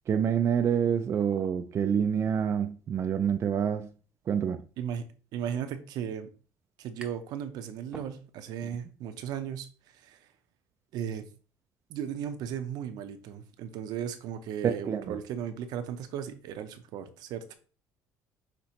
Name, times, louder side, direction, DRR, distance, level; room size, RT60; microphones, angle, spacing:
voice 1, 0.1-3.9 4.3-4.6 14.6-15.2, right 8 dB, 40° right, 0.4 m, -27 dB
voice 2, 5.3-6.3 6.8-9.7 10.0-10.2 10.9-11.3 11.9-17.5, right 9 dB, 70° right, 0.7 m, -36 dB
sound 1, 7.0-7.4 7.7-8.6, right 2 dB, 10° right, 0.8 m, -48 dB
5.8 x 3.0 x 2.9 m
cardioid pair, 105°, 7 cm